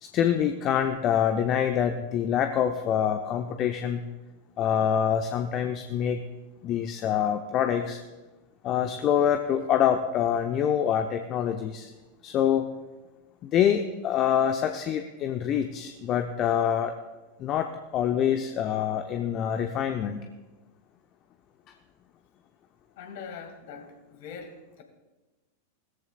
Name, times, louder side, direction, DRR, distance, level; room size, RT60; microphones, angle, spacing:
voice 1, 0.0-4.1 4.6-6.2 6.6-8.0 8.6-11.9 12.2-12.7 13.4-16.9 17.4-20.2, left 9 dB, 35° left, 6 dB, 0.8 m, -25 dB
voice 2, 23.0-24.8, left 6 dB, 50° left, 4 dB, 2.3 m, -42 dB
20.0 x 14.5 x 2.4 m, 1.2 s
figure-of-eight pair, 90°, 0 cm